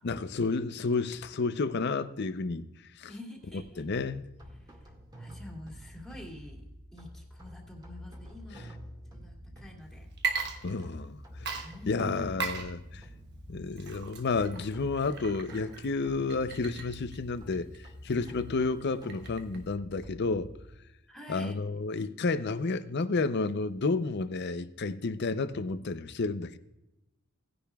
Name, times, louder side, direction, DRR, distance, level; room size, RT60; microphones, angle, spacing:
voice 1, 0.0-2.7 3.0-3.1 3.8-4.2 10.6-13.0 13.5-17.7 18.0-20.5 21.3-26.6, left 3 dB, 55° left, 0.6 m, -31 dB
voice 2, 3.1-3.9 4.5-6.7 6.9-8.8 9.1-10.1 11.6-12.4 21.1-21.6, equal, ahead, 2.4 m, -46 dB
sound 1, 3.6-20.8, equal, 20° right, 2.0 m, -48 dB
Water / Liquid, 10.1-11.1 11.5-19.7, right 5 dB, 55° right, 1.2 m, -39 dB
18.0 x 10.0 x 2.3 m
head